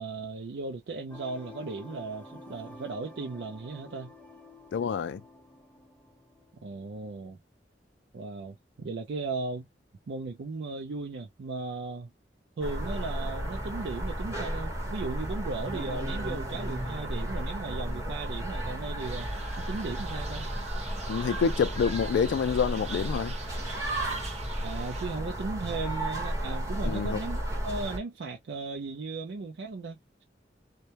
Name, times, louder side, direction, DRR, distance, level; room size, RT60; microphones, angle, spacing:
voice 1, 0.0-4.1 6.6-7.4 8.1-9.7 10.1-12.1 12.6-20.5 24.6-30.0, right 3 dB, 75° right, 0.4 m, -36 dB
sound 1, 1.1-7.0, left 2 dB, 10° left, 0.5 m, -50 dB
voice 2, 4.7-5.2 21.1-23.4 26.8-27.2, left 6 dB, 80° left, 0.3 m, -27 dB
sound 2, 12.6-28.0, right 1 dB, 20° right, 1.0 m, -33 dB
sound 3, 19.0-25.1, right 5 dB, 40° right, 0.7 m, -45 dB
2.2 x 2.1 x 2.7 m
head